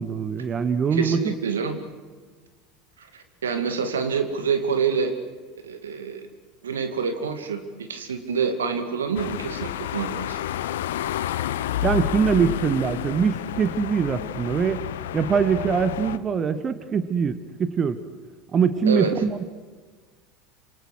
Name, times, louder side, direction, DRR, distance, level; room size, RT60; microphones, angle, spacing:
voice 1, 0.0-1.3 11.8-14.8 15.1-18.0 18.5-19.4, right 6 dB, 30° right, 12 dB, 1.5 m, -23 dB
voice 2, 0.9-1.8 3.0-5.2 5.6-6.3 6.6-10.4 18.9-19.2, right 6 dB, 75° right, 8 dB, 2.5 m, -27 dB
sound 1, 9.2-16.2, left 11 dB, 70° left, 0.9 m, -30 dB
27.0 x 26.5 x 6.4 m, 1.4 s
figure-of-eight pair, 75°, 0 cm